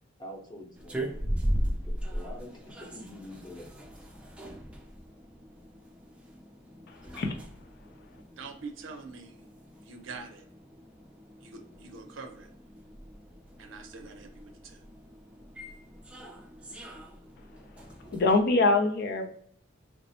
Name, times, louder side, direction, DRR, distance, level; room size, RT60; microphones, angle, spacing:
voice 1, 0.2-1.3 1.5-3.9, left 1 dB, 20° left, -1 dB, 0.8 m, -46 dB
sound 1, 0.8-18.4, equal, 5° right, 0.4 m, -39 dB
voice 2, 6.9-7.4 18.1-19.3, left 3 dB, 55° left, 5 dB, 0.4 m, -24 dB
voice 3, 8.4-9.4 9.8-10.4 11.4-12.5 13.6-14.8, right 4 dB, 70° right, 4 dB, 0.6 m, -44 dB
3.1 x 2.0 x 2.6 m, 0.63 s
head